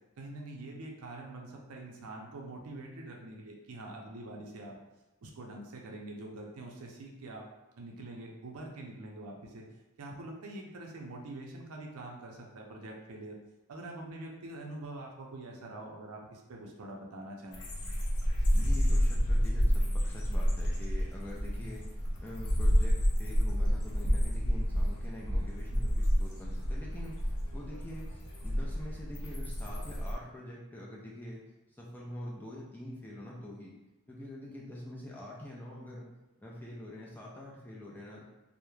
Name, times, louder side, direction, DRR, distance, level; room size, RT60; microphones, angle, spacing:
voice 1, 0.2-4.8 5.2-7.4 7.7-9.7 10.0-13.3 13.7-17.6, right 2 dB, 75° right, 0 dB, 0.5 m, -44 dB
sound 1, 17.5-30.1, equal, 65° left, 0.5 m, -29 dB
voice 2, 18.5-21.9 22.2-27.2 27.5-28.1 28.4-31.4 31.7-33.8 34.1-36.1 36.4-38.2, left 1 dB, 10° left, -4 dB, 0.3 m, -45 dB
2.3 x 2.0 x 3.1 m, 1.0 s
head